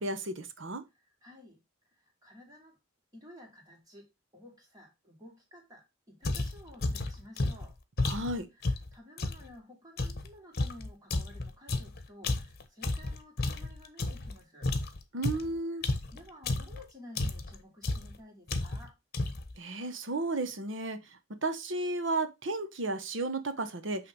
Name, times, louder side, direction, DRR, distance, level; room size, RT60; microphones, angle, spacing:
voice 1, 0.0-0.8 8.0-8.5 15.1-15.9 19.6-24.1, right 2 dB, 65° right, 1.1 m, -33 dB
voice 2, 0.9-1.6 1.9-2.8 3.1-4.1 4.3-7.8 8.5-14.7 15.7-18.9, left 1 dB, 20° right, 2.9 m, -53 dB
sound 1, 6.2-9.5 10.0-14.3 14.6-16.8 17.2-17.6 17.8-18.2 18.5-18.9 19.1-19.5, left 2 dB, 50° left, 1.1 m, -32 dB
8.6 x 3.5 x 4.7 m
head